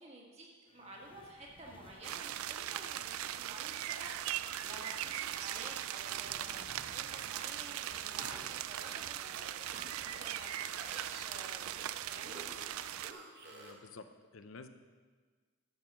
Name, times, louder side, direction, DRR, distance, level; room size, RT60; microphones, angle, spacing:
voice 1, 0.0-12.9, right 1 dB, 30° right, -2 dB, 1.7 m, -51 dB
sound 1, 0.7-8.9 9.2-12.6, left 3 dB, 25° left, 0.6 m, -60 dB
sound 2, 2.0-13.1, right 12 dB, 90° right, 0.4 m, -40 dB
sound 3, 8.0-13.9, right 3 dB, 50° right, 1.2 m, -52 dB
voice 2, 13.4-14.1 14.3-14.7, left 4 dB, 70° left, 9 dB, 0.6 m, -51 dB
12.0 x 5.6 x 6.1 m, 1.4 s
head